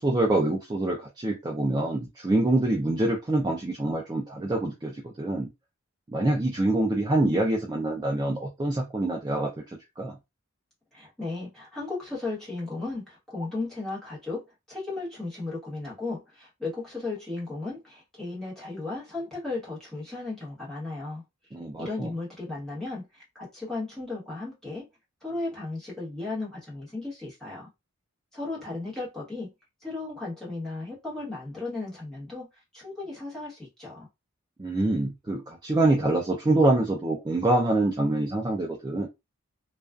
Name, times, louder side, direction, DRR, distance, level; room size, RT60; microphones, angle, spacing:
voice 1, 0.0-5.5 6.1-9.6 10.0-10.2 21.5-22.1 34.6-39.1, right 2 dB, 20° right, 0.3 m, -25 dB
voice 2, 10.9-21.2 21.8-24.8 25.2-27.7 28.3-29.5 29.8-32.5 32.7-34.1, left 3 dB, ahead, 1.1 m, -35 dB
2.4 x 2.3 x 2.3 m
head